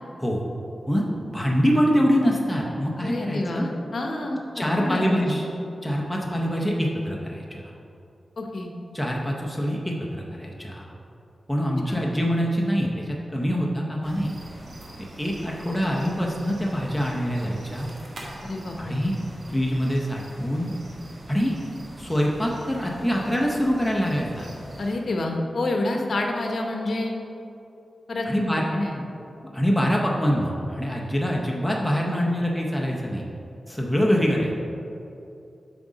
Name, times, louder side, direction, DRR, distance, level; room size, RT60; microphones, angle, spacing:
voice 1, 0.9-3.7 4.5-5.4 5.8-7.7 8.9-10.9 11.5-14.3 15.2-17.9 18.8-19.1 19.5-20.7 21.3-21.5 22.0-24.5 28.2-28.6 29.5-33.2 33.7-34.5, equal, 5° left, -2 dB, 0.7 m, -24 dB
voice 2, 3.0-5.2 8.4-8.7 11.9-12.0 18.4-19.0 24.8-27.2 28.1-28.3 28.7-29.0, left 2 dB, 60° left, 2 dB, 0.8 m, -28 dB
sound 1, 14.0-25.0, right 1 dB, 60° right, 1.2 m, -43 dB
7.8 x 3.7 x 5.0 m, 2.8 s
wide cardioid pair, 110°, 0 cm